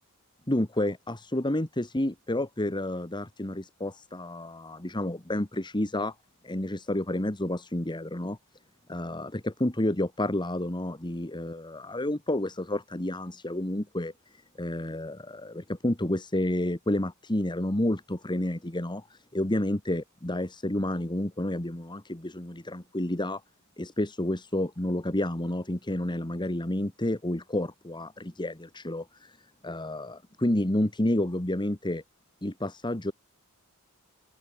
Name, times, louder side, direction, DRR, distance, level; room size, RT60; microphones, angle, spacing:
voice 1, 0.5-6.1 6.4-8.4 8.9-23.4 23.8-29.4 29.6-32.0 32.4-33.1, left 1 dB, 20° left, 1.7 m, -30 dB
head